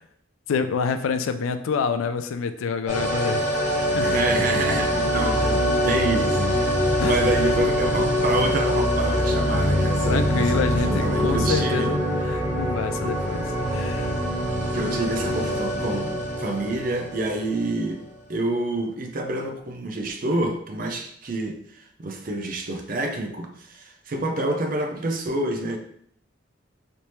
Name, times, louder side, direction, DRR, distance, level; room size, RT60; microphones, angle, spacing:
voice 1, 0.5-3.6 3.9-4.1 7.0-7.3 10.1-14.1, left 5 dB, 90° left, 9 dB, 0.3 m, -27 dB
sound 1, 2.9-17.8 18.0-18.1, equal, 5° right, 1.2 m, -24 dB
voice 2, 4.0-11.9 14.7-18.0 18.3-25.8, right 2 dB, 45° right, 4 dB, 0.5 m, -28 dB
3.3 x 2.8 x 3.0 m, 0.68 s
head